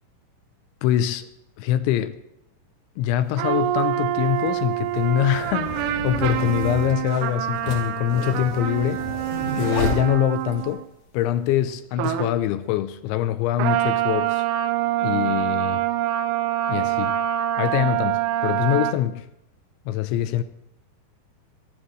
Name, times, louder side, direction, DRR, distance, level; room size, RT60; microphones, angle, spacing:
voice 1, 0.8-1.3 1.6-2.2 3.0-9.0 9.6-10.8 11.1-14.5 15.0-15.8 16.7-17.2 17.6-19.3 19.9-20.4, left 12 dB, 80° left, 2.8 m, -24 dB
sound 1, 3.2-3.3 4.3-10.7, left 2 dB, 55° left, 4.8 m, -32 dB
sound 2, 3.4-10.9 12.0-12.4 13.6-18.9, right 13 dB, 80° right, 3.3 m, -25 dB
26.0 x 12.5 x 3.2 m
omnidirectional pair, 5.9 m